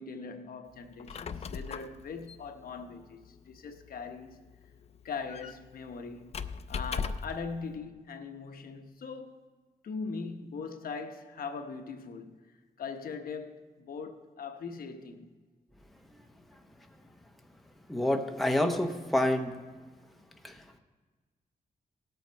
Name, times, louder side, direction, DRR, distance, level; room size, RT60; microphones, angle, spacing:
voice 1, 0.0-4.4 5.0-6.4 6.7-9.4 9.8-15.3, left 5 dB, 65° left, 1.0 m, -41 dB
Squeak, 0.8-7.5, left 5 dB, 40° left, 0.4 m, -40 dB
voice 2, 17.9-19.6 20.4-20.8, left 1 dB, ahead, 0.7 m, -28 dB
18.0 x 8.0 x 4.5 m
wide cardioid pair, 155°, 16 cm